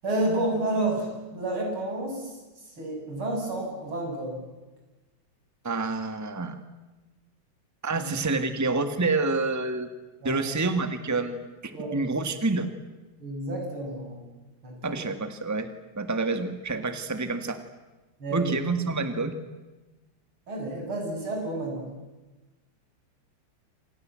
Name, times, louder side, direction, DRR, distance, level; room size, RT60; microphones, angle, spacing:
voice 1, 0.0-2.4 2.8-4.4 8.0-8.1 10.2-10.5 11.7-12.0 13.2-14.2 14.6-14.9 18.2-18.5 20.5-21.9, right 1 dB, 80° right, 0 dB, 8.8 m, -30 dB
voice 2, 5.6-6.6 7.8-9.9 10.2-12.7 14.8-15.7 15.9-17.6 18.3-19.3, right 3 dB, 10° right, 9 dB, 1.7 m, -28 dB
28.0 x 28.0 x 7.7 m, 1.1 s
omnidirectional pair, 2.3 m